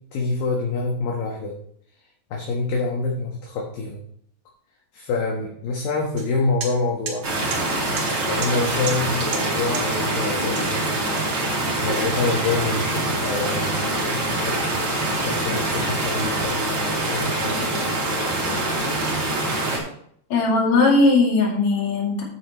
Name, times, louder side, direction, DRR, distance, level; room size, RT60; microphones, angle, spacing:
voice 1, 0.1-1.5 2.3-4.0 4.9-7.3 8.2-10.9 11.8-14.6 15.1-17.9, left 3 dB, 65° left, -1 dB, 2.8 m, -26 dB
sound 1, 6.2-6.3 6.6-6.7 7.1-7.2 7.5-7.6 8.0-8.1 8.4-8.5 8.9-9.0 9.3-9.4 9.7-9.8 10.6-10.7 11.2-12.2, right 5 dB, 55° right, 2.8 m, -32 dB
sound 2, 7.2-19.8, right 2 dB, 35° right, 2.4 m, -24 dB
voice 2, 20.3-22.2, left 3 dB, 45° left, -2 dB, 3.4 m, -18 dB
9.9 x 8.4 x 3.0 m, 0.65 s
omnidirectional pair, 4.8 m